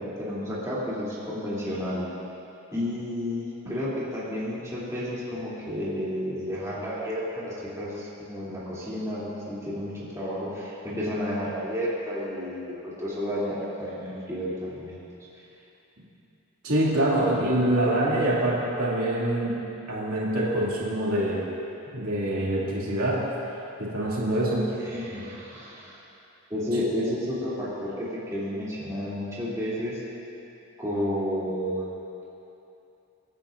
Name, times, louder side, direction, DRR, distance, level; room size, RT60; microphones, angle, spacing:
voice 1, 0.0-2.0 2.7-15.0 24.7-26.0 26.5-30.0 30.8-32.0, equal, 15° right, -10 dB, 3.0 m, -31 dB
voice 2, 16.6-19.6 19.9-21.5 21.9-23.3 23.8-24.7, right 1 dB, 70° right, -7 dB, 2.7 m, -25 dB
25.5 x 10.0 x 2.6 m, 2.8 s
head